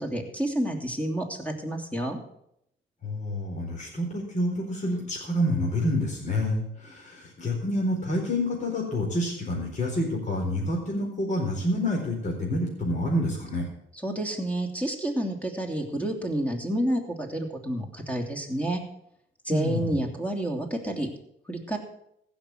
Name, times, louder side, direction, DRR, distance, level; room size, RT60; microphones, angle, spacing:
voice 1, 0.0-2.2 13.9-18.8 19.4-21.1 21.5-21.8, right 1 dB, 5° left, 3 dB, 3.0 m, -29 dB
voice 2, 3.0-13.7 19.5-20.0, left 1 dB, 40° left, -1 dB, 4.2 m, -28 dB
15.0 x 6.2 x 8.1 m, 0.76 s
cardioid pair, 80°, 20 cm